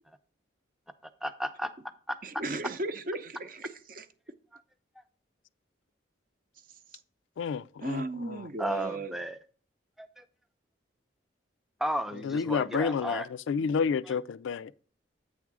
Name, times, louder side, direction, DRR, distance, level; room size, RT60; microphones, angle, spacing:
voice 1, 1.0-1.7 2.1-2.2 8.6-9.4 10.0-10.2 11.8-13.3, right 1 dB, ahead, 0.4 m, -33 dB
voice 2, 2.2-4.1 7.8-9.2, right 2 dB, 45° right, 0.6 m, -36 dB
voice 3, 7.4-8.4 12.2-14.7, left 6 dB, 90° left, 0.3 m, -30 dB
8.4 x 3.6 x 6.0 m
head